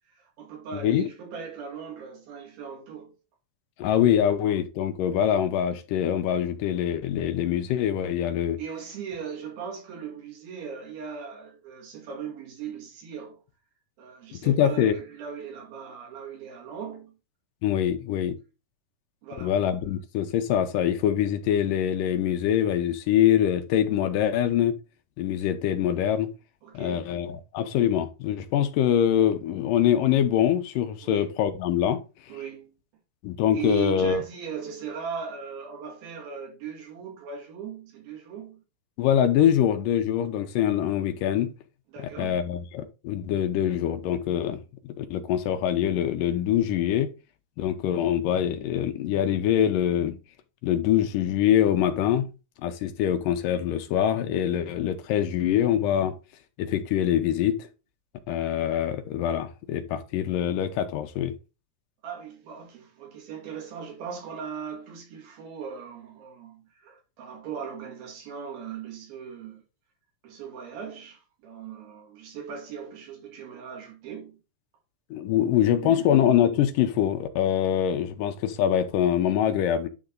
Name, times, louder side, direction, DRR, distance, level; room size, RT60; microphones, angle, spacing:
voice 1, 0.1-3.1 8.6-13.4 14.0-17.2 19.2-19.6 26.6-27.1 31.0-31.3 32.3-32.7 33.5-38.6 41.9-42.5 62.0-69.6 70.2-74.4 75.4-76.1, right 7 dB, 90° right, 3.8 m, -38 dB
voice 2, 3.8-8.6 14.3-14.9 17.6-18.4 19.4-24.8 25.2-26.3 26.7-32.0 33.2-34.2 39.0-41.5 42.2-44.6 44.9-47.1 47.6-50.2 50.6-52.3 52.6-56.1 56.6-57.6 58.3-61.3 75.1-79.9, left 10 dB, 75° left, 2.2 m, -24 dB
9.9 x 3.4 x 3.8 m
omnidirectional pair, 4.1 m